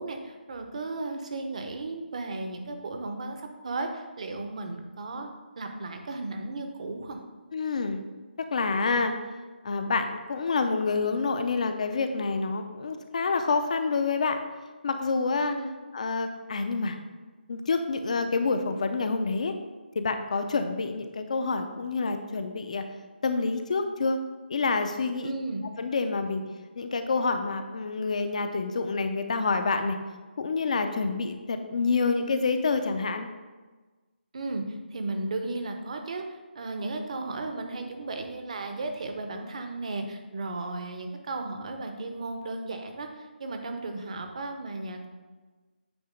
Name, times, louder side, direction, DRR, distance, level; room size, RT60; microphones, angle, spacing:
voice 1, 0.0-5.3 5.6-7.2 15.4-15.7 25.2-25.7 34.3-45.1, right 2 dB, 40° right, 5 dB, 0.7 m, -35 dB
voice 2, 7.5-8.0 8.5-9.1 9.6-14.4 14.8-15.6 15.9-17.0 17.5-19.6 19.9-22.9 23.2-24.2 24.5-25.3 25.8-26.4 26.8-30.0 30.4-33.3, left 4 dB, 40° left, 8 dB, 0.5 m, -27 dB
8.6 x 2.9 x 5.0 m, 1.3 s
hypercardioid pair, 175°, 6 cm